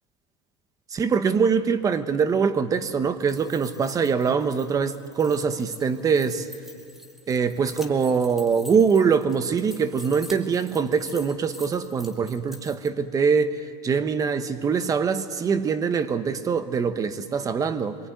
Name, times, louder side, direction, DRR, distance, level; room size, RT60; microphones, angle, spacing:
voice 1, 0.9-6.5 7.3-13.6 13.8-18.0, right 6 dB, 25° right, 1.1 m, -23 dB
sound 1, 3.1-12.9, left 1 dB, ahead, 2.2 m, -47 dB
25.5 x 23.5 x 9.3 m
cardioid pair, 140°, 14 cm